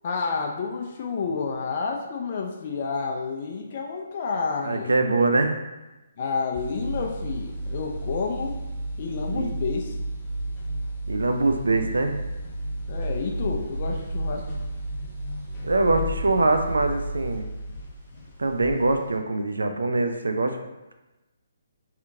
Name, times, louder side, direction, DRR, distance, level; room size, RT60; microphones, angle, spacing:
voice 1, 0.0-5.0 6.2-8.6 9.0-10.0 12.9-14.4, left 5 dB, 45° left, 1 dB, 0.3 m, -30 dB
voice 2, 4.6-5.5 9.3-9.5 11.1-12.2 15.6-17.5 18.4-20.6, right 2 dB, 80° right, 6 dB, 0.3 m, -23 dB
sound 1, 6.6-19.2, right 1 dB, 25° left, 0.9 m, -32 dB
2.8 x 2.4 x 2.6 m, 1.0 s
figure-of-eight pair, 140°, 0 cm